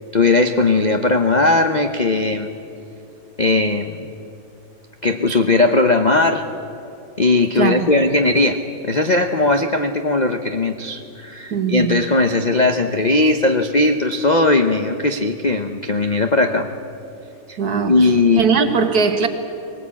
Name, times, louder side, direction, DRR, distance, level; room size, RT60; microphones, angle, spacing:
voice 1, 0.1-2.5 3.4-4.1 5.0-6.5 7.2-8.6 8.9-16.7 17.5-17.6 17.9-18.4, left 2 dB, 60° left, 6 dB, 0.4 m, -18 dB
voice 2, 7.6-7.9 11.5-12.0 17.6-18.1 18.4-19.3, right 5 dB, 55° right, 7 dB, 1.8 m, -19 dB
21.0 x 19.0 x 8.4 m, 2.7 s
omnidirectional pair, 2.1 m